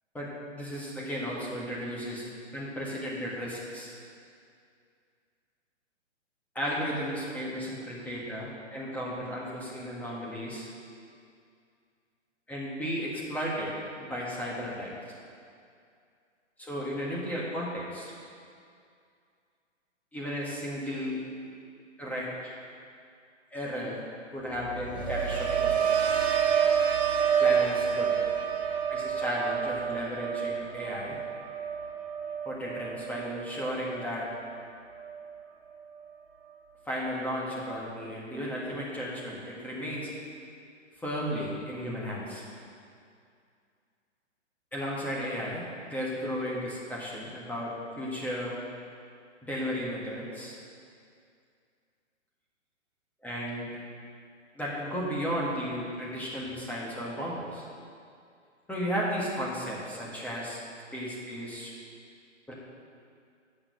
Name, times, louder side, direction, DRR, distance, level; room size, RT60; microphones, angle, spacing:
voice 1, 0.1-2.3 2.5-3.9 6.6-10.7 12.5-13.7 14.0-14.9 16.6-18.1 20.1-21.2 22.0-22.5 23.5-24.0 24.3-26.2 27.4-28.1 28.9-31.2 32.5-34.3 36.9-40.1 41.0-42.4 44.7-45.7 45.9-48.6 49.4-50.6 53.2-53.7 54.5-57.7 58.7-60.6 60.9-61.7 62.5-62.6, equal, 5° left, -6 dB, 1.6 m, -34 dB
sound 1, 24.5-34.6 35.0-35.4, right 7 dB, 60° right, 1.6 m, -29 dB
8.7 x 6.6 x 6.8 m, 2.3 s
hypercardioid pair, 130°, 37 cm